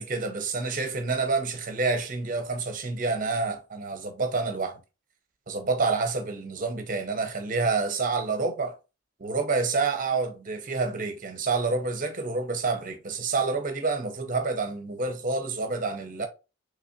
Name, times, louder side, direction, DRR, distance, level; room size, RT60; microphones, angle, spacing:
voice 1, 0.0-4.8 5.5-8.8 9.2-16.3, right 4 dB, 40° right, 0.6 m, -28 dB
3.4 x 3.2 x 2.6 m
head